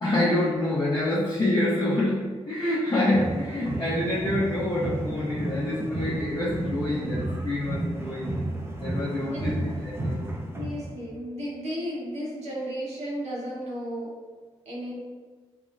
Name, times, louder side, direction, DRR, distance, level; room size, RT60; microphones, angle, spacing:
voice 1, 0.0-8.4 8.8-9.5 9.8-10.3, left 1 dB, 35° left, -10 dB, 0.7 m, -27 dB
sound 1, 3.1-11.1, right 1 dB, 20° right, 0.4 m, -32 dB
voice 2, 9.3-9.7 10.5-14.1 14.6-15.0, equal, 70° right, -5 dB, 0.9 m, -34 dB
3.0 x 2.0 x 2.5 m, 1.4 s
cardioid pair, 70°, 12 cm